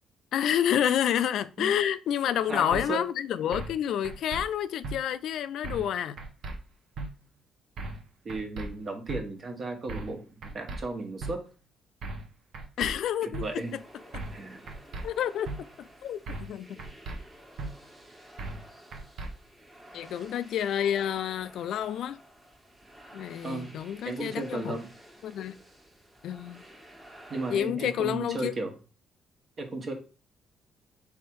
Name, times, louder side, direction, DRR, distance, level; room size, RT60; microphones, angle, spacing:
voice 1, 0.3-6.2 12.8-13.6 14.1-14.2 15.0-15.5 16.0-16.8 19.9-22.2 23.1-24.8 25.2-25.6 26.2-26.6 27.5-28.5, left 10 dB, 75° left, 0.3 m, -29 dB
voice 2, 2.5-3.0 8.2-11.4 13.4-13.7 14.3-14.7 23.4-23.7 24.0-24.9 27.3-28.7 29.6-29.9, right 3 dB, 45° right, 1.2 m, -35 dB
sound 1, 2.7-2.8 3.5-3.8 4.0-4.4 4.8-5.0 5.6-5.9 6.2-6.6 7.0-7.1 7.8-8.0 8.3-8.7 9.1-9.2 9.9-10.1 10.4-10.8 11.2-11.3 12.0-12.3 12.5-12.9 13.3-13.4 14.1-14.4 14.7-15.0 15.4-15.6 16.3-16.5 16.8-17.2 17.6-17.7 18.4-18.6 18.9-19.3, right 2 dB, 70° right, 0.8 m, -36 dB
sound 2, 13.4-27.6, right 1 dB, 20° right, 1.3 m, -52 dB
3.5 x 3.3 x 4.6 m
cardioid pair, 90°, 0 cm